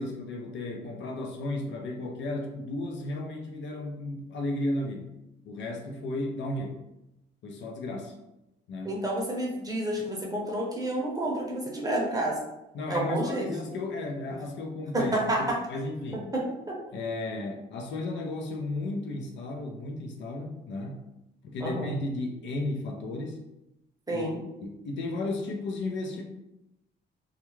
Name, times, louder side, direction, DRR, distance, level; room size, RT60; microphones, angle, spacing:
voice 1, 0.0-5.1 5.5-6.8 7.4-8.2 8.7-9.0 12.7-16.3 16.9-21.1 21.4-23.4 24.1-24.3 24.6-26.2, left 2 dB, 65° left, 2 dB, 0.5 m, -34 dB
voice 2, 8.8-12.4 12.9-13.5 14.9-15.6 16.3-16.8 21.6-21.9 24.1-24.4, right 1 dB, 20° right, -2 dB, 0.7 m, -29 dB
2.3 x 2.2 x 3.0 m, 0.89 s
cardioid pair, 90°, 20 cm